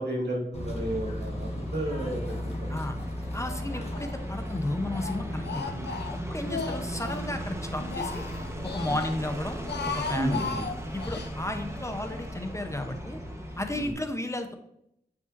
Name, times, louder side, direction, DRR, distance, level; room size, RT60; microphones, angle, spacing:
voice 1, 0.0-2.8 6.4-6.6 8.8-9.0 10.2-10.7 13.7-13.9, right 1 dB, 80° right, -2 dB, 1.9 m, -33 dB
Bird / Train, 0.5-13.9, left 1 dB, 40° left, 1.4 m, -38 dB
sound 1, 0.6-13.8, right 1 dB, 15° right, 1.2 m, -40 dB
voice 2, 3.3-5.7 6.3-8.2 8.6-9.6 9.9-10.5 10.9-13.2 13.6-14.5, left 1 dB, 15° left, 6 dB, 0.8 m, -33 dB
Speech, 3.4-4.2 4.5-7.3 7.7-9.1 9.5-11.3, left 5 dB, 80° left, 0.6 m, -36 dB
8.2 x 5.3 x 2.6 m, 0.77 s
cardioid pair, 55°, 17 cm